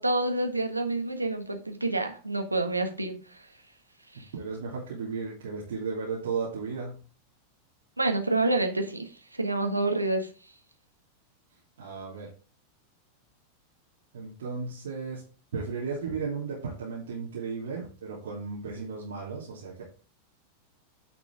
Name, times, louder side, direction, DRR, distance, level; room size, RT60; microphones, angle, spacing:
voice 1, 0.0-3.4 4.1-4.3 8.0-10.3, right 2 dB, 85° right, 5 dB, 1.4 m, -28 dB
voice 2, 4.3-7.0 11.8-12.3 14.1-15.2 15.5-19.8, right 5 dB, 60° right, -6 dB, 3.1 m, -34 dB
9.8 x 5.9 x 3.6 m, 0.37 s
figure-of-eight pair, 90°, 0 cm